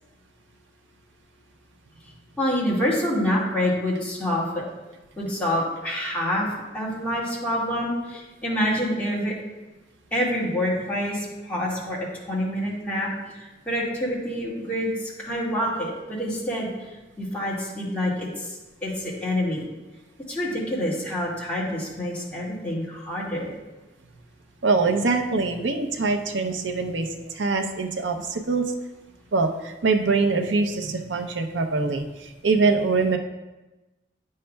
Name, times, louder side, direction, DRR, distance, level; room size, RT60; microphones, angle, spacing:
voice 1, 2.4-4.7 5.2-6.5 6.7-9.3 10.1-12.0 12.3-16.7 17.2-18.6 18.8-19.7 20.3-23.5, equal, 10° left, -7 dB, 1.8 m, -27 dB
voice 2, 24.6-28.7 29.3-33.2, right 4 dB, 85° right, 5 dB, 0.6 m, -24 dB
9.5 x 6.4 x 2.2 m, 1.1 s
head